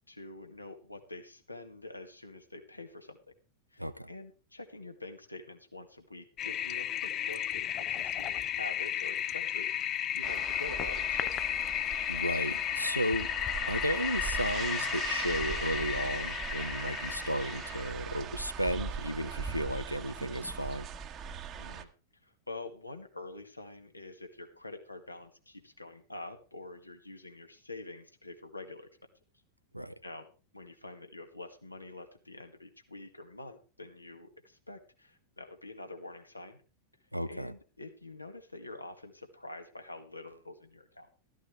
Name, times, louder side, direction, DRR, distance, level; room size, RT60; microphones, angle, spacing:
voice 1, 0.1-3.2 3.7-11.3 21.5-21.9 22.2-28.9 30.0-30.3 30.5-36.6 37.3-41.1, left 2 dB, 85° left, 2.0 m, -46 dB
voice 2, 3.8-4.1 12.1-13.3 13.7-20.9 29.7-29.9 37.1-37.5, equal, 90° right, 0.7 m, -34 dB
Toilet flush, 6.4-17.9, left 11 dB, 30° left, 0.6 m, -34 dB
sound 1, 10.2-21.8, right 7 dB, 30° right, 1.3 m, -40 dB
14.0 x 13.5 x 3.3 m
figure-of-eight pair, 90°, 0 cm